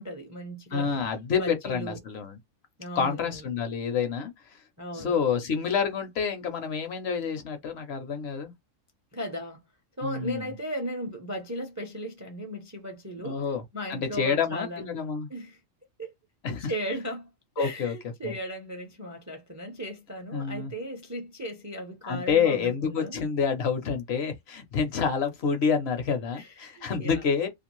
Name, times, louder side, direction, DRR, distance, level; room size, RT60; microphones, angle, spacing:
voice 1, 0.0-1.1 1.4-2.0 2.8-3.4 4.8-5.2 9.1-9.6 10.0-13.4 13.7-14.9 15.3-15.6 16.0-16.1 16.6-17.3 17.6-23.2 26.3-27.2, equal, 25° right, 0.4 m, -36 dB
voice 2, 0.7-2.4 2.9-4.6 4.9-8.5 10.0-10.5 13.2-13.6 13.9-15.3 16.4-16.7 17.6-17.9 18.2-18.3 20.3-20.7 22.0-27.5, left 6 dB, 60° left, 0.8 m, -28 dB
2.5 x 2.3 x 2.9 m
omnidirectional pair, 1.3 m